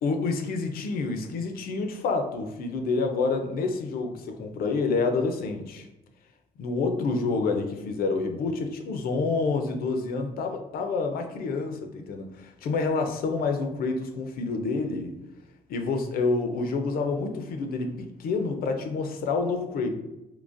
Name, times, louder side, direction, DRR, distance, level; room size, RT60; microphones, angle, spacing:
voice 1, 0.0-5.9 6.6-15.1 15.7-19.9, left 4 dB, 80° left, 6 dB, 0.5 m, -28 dB
3.8 x 2.8 x 2.5 m, 0.98 s
cardioid pair, 170°, 15 cm